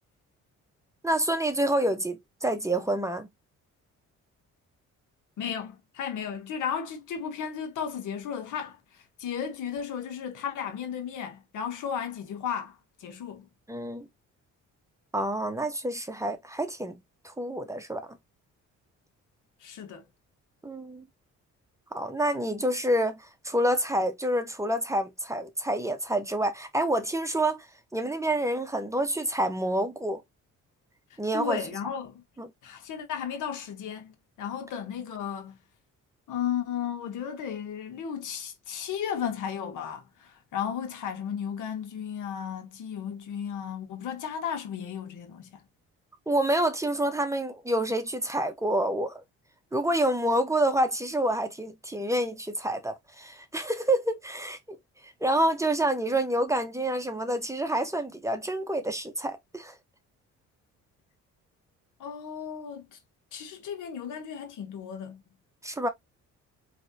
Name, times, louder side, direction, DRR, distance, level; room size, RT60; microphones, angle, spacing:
voice 1, 1.0-3.3 13.7-14.1 15.1-17.0 17.2-18.1 20.6-21.1 21.9-27.7 27.9-30.2 31.2-31.6 32.4-32.5 46.3-49.2 49.7-54.8 55.0-59.7 65.6-65.9, right 1 dB, 10° right, 1.0 m, -28 dB
voice 2, 5.4-13.5 19.6-20.1 31.1-32.2 32.6-35.6 36.3-45.6 62.0-63.0 63.3-65.2, left 8 dB, 80° left, 1.5 m, -34 dB
4.6 x 3.3 x 2.8 m
cardioid pair, 90°, 30 cm